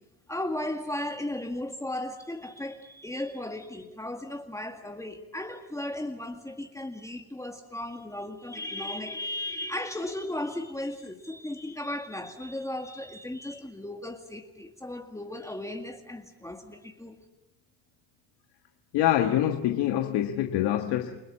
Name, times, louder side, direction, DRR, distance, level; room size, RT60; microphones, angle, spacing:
voice 1, 0.3-17.2, left 1 dB, 5° left, 2.0 m, -36 dB
voice 2, 18.9-21.2, left 12 dB, 70° left, 1.7 m, -25 dB
29.5 x 19.5 x 8.8 m
supercardioid pair, 95°, 40 cm